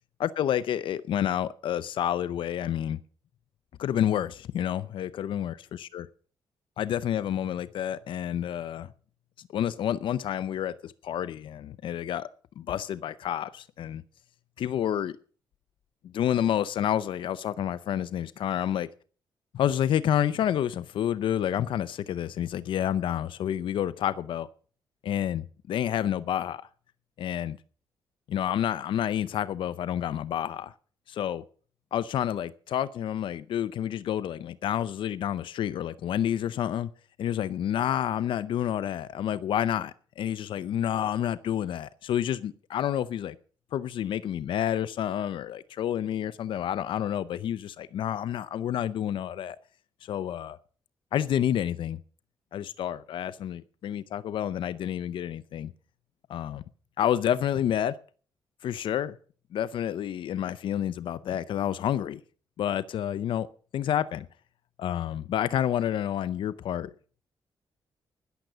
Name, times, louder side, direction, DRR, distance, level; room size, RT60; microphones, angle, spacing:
voice 1, 0.2-3.0 3.8-6.1 6.8-8.9 9.5-12.3 12.6-14.0 14.6-15.2 16.0-18.9 19.5-24.5 25.0-26.7 27.2-27.6 28.3-30.7 31.1-31.4 31.9-36.9 37.2-43.4 43.7-49.6 50.0-50.6 51.1-52.0 52.5-55.7 56.3-56.6 57.0-58.0 58.6-59.2 59.5-62.2 62.6-63.5 63.7-64.3 64.8-66.9, left 10 dB, 75° left, 0.6 m, -29 dB
14.0 x 10.5 x 6.7 m
wide cardioid pair, 160°, 9 cm